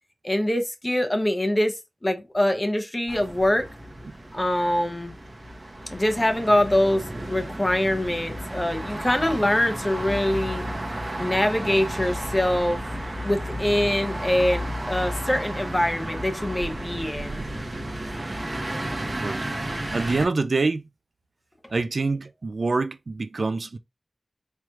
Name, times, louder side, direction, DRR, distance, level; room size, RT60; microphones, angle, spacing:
voice 1, 0.2-1.8 2.0-3.7 4.3-5.1 5.9-10.6 11.1-12.8 13.2-17.4, left 1 dB, 20° left, 0.8 m, -24 dB
sound 1, 3.1-20.3, right 1 dB, 35° right, 0.9 m, -32 dB
voice 2, 19.9-20.8 21.7-23.8, right 3 dB, 65° right, 0.3 m, -25 dB
4.5 x 3.1 x 2.4 m
wide cardioid pair, 85°, 0 cm